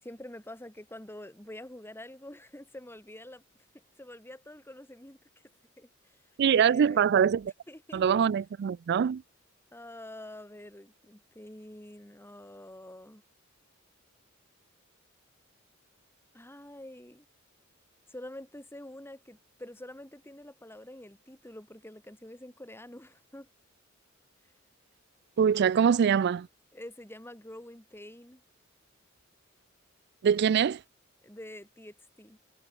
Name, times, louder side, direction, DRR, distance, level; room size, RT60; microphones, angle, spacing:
voice 1, 0.0-3.4 4.0-5.2 5.8-6.2 6.5-7.2 7.7-8.0 9.7-13.2 16.3-17.2 18.1-23.5 26.7-28.4 31.2-32.4, left 1 dB, 10° left, 5.1 m, -47 dB
voice 2, 6.4-7.4 7.9-9.2 25.4-26.5 30.2-30.8, right 7 dB, 55° right, 0.3 m, -23 dB
head